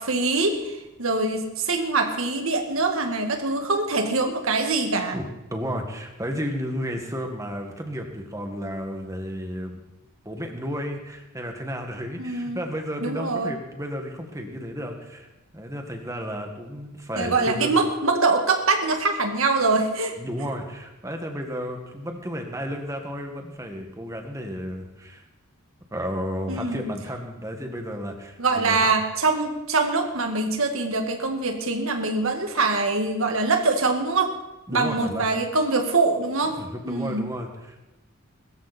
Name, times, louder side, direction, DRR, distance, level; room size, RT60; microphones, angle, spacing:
voice 1, 0.0-5.2 12.2-12.6 13.0-13.5 17.2-20.1 26.5-26.8 28.4-34.3 34.7-36.5 36.9-37.3, right 3 dB, 70° right, 5 dB, 1.9 m, -24 dB
voice 2, 5.1-9.8 10.2-15.3 15.5-17.8 20.2-25.2 25.9-28.9 34.7-35.3 36.6-37.8, equal, 15° right, 3 dB, 2.0 m, -32 dB
21.0 x 14.0 x 4.4 m, 1.0 s
head